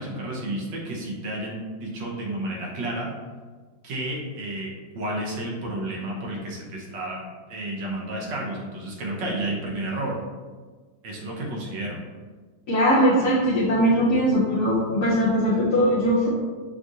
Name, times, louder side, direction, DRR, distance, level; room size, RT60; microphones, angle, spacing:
voice 1, 0.0-3.1 3.8-7.2 7.5-10.2 11.0-12.0, right 1 dB, 75° right, -3 dB, 1.5 m, -31 dB
voice 2, 12.7-16.3, equal, 60° left, -8 dB, 0.8 m, -20 dB
6.2 x 2.4 x 2.7 m, 1.4 s
omnidirectional pair, 2.1 m